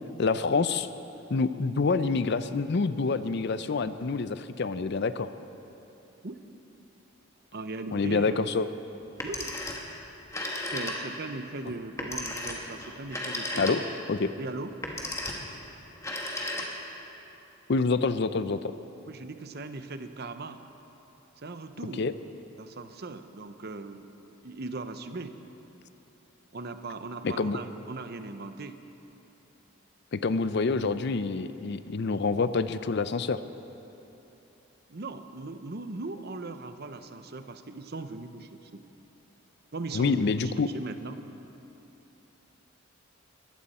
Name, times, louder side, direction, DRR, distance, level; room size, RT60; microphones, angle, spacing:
voice 1, 0.2-0.9 1.3-5.3 7.9-8.7 13.6-13.8 14.1-14.3 17.7-18.7 22.0-22.1 27.2-27.6 30.1-33.4 39.9-40.7, left 4 dB, 50° left, 12 dB, 0.5 m, -27 dB
voice 2, 7.5-8.5 9.2-9.5 10.7-13.9 14.4-14.7 19.1-20.6 21.4-22.0 22.6-24.1 24.4-25.3 26.5-28.7 34.9-38.8 39.7-41.4, right 3 dB, 50° right, 9 dB, 0.7 m, -39 dB
Telephone, 9.1-9.9 10.2-11.3 12.0-14.1 14.7-15.5 16.0-17.0, left 1 dB, 15° left, 1.4 m, -34 dB
21.0 x 15.5 x 4.3 m, 3.0 s
head